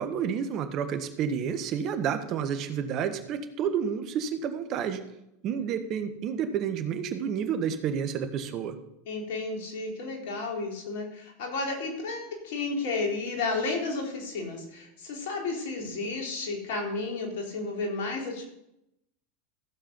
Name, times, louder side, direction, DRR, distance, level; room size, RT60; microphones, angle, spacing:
voice 1, 0.0-5.0 5.4-8.8, right 7 dB, 45° right, 9 dB, 1.4 m, -30 dB
voice 2, 9.1-18.5, left 3 dB, 65° left, 0 dB, 3.8 m, -32 dB
15.0 x 7.5 x 5.3 m, 0.83 s
hypercardioid pair, 90°, 0 cm